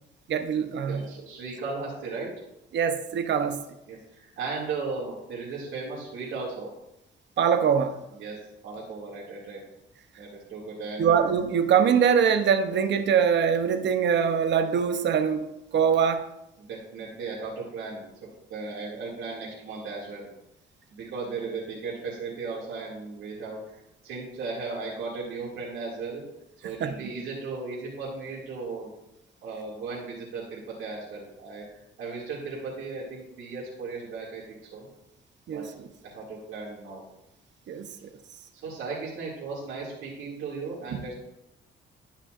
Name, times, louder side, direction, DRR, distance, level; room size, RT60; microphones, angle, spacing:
voice 1, 0.3-1.0 2.7-3.6 7.4-8.0 11.0-15.4 15.7-16.2 26.8-26.9 35.5-35.7 37.7-37.9 40.9-41.0, right 7 dB, 65° right, 8 dB, 0.8 m, -23 dB
voice 2, 0.8-2.3 3.9-6.7 8.1-8.4 8.6-9.6 10.2-11.1 16.6-18.1 18.5-20.3 20.9-26.2 26.6-28.9 29.4-31.6 32.0-34.9 35.5-35.6 36.0-37.0 38.6-41.2, right 4 dB, 85° right, -5 dB, 2.4 m, -36 dB
12.0 x 5.6 x 2.5 m, 0.88 s
cardioid pair, 90°, 20 cm